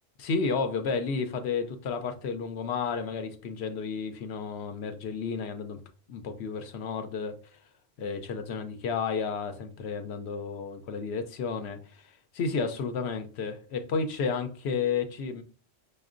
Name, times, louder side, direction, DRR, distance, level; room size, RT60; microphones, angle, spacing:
voice 1, 0.2-5.8 6.1-7.4 8.0-15.4, left 5 dB, 85° left, 0.9 m, -32 dB
5.1 x 2.4 x 2.4 m
omnidirectional pair, 1.1 m